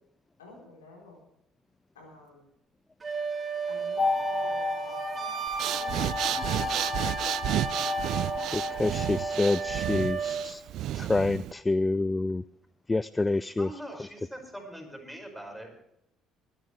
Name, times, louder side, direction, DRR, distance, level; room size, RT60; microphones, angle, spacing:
voice 1, 0.4-1.2 1.9-2.5 3.7-7.2, left 2 dB, 90° left, -1 dB, 4.1 m, -52 dB
Wind instrument woodwind instrument, 3.0-10.4, right 5 dB, 30° right, 3.3 m, -34 dB
sound 1, 4.0-9.8, left 4 dB, 45° left, 1.4 m, -33 dB
Breathing, 5.5-11.5, right 13 dB, 65° right, 0.4 m, -32 dB
voice 2, 8.5-10.6 10.9-12.4 12.9-13.8, left 2 dB, 20° left, 19 dB, 0.4 m, -27 dB
voice 3, 13.6-15.8, right 1 dB, ahead, 2 dB, 5.6 m, -42 dB
24.0 x 10.5 x 3.3 m, 0.79 s
hypercardioid pair, 55°, 0 cm